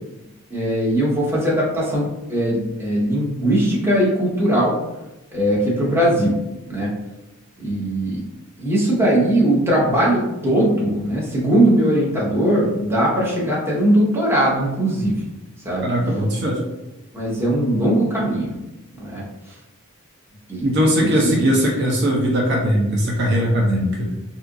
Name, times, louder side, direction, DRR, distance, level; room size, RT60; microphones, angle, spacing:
voice 1, 0.5-4.8 5.3-6.4 6.7-6.9 7.6-8.2 8.6-15.3 15.6-15.9 17.1-18.5 19.0-19.2 20.5-20.7 21.0-21.3, right 1 dB, 10° right, -6 dB, 0.7 m, -20 dB
voice 2, 15.8-16.6 20.6-24.1, equal, 50° right, -1 dB, 0.5 m, -19 dB
2.8 x 2.4 x 3.5 m, 0.97 s
head